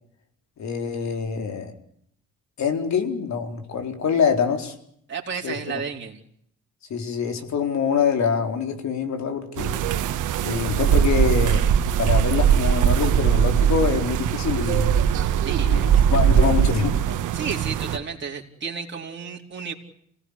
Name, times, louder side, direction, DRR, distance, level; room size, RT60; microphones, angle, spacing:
voice 1, 0.6-1.7 2.6-4.7 5.4-5.6 6.9-9.8 10.4-14.9 15.6-17.0, left 6 dB, 65° left, 5 dB, 4.3 m, -25 dB
voice 2, 5.1-6.2 15.1-16.4 17.3-19.7, right 6 dB, 40° right, -1 dB, 4.3 m, -33 dB
sound 1, 9.6-18.0, right 9 dB, 85° right, 1.6 m, -20 dB
28.0 x 18.0 x 9.8 m, 0.71 s
cardioid pair, 90°, 30 cm